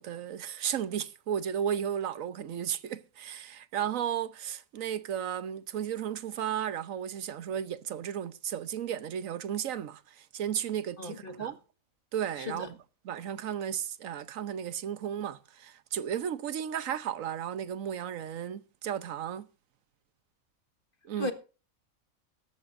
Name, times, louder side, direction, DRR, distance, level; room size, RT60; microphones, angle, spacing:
voice 1, 0.0-11.6 12.1-12.8 13.0-19.5 21.0-21.3, right 9 dB, 70° right, 1.2 m, -34 dB
voice 2, 11.0-11.5 12.4-12.7 21.2-21.3, left 2 dB, 40° left, 1.7 m, -36 dB
17.0 x 13.5 x 2.6 m
omnidirectional pair, 1.5 m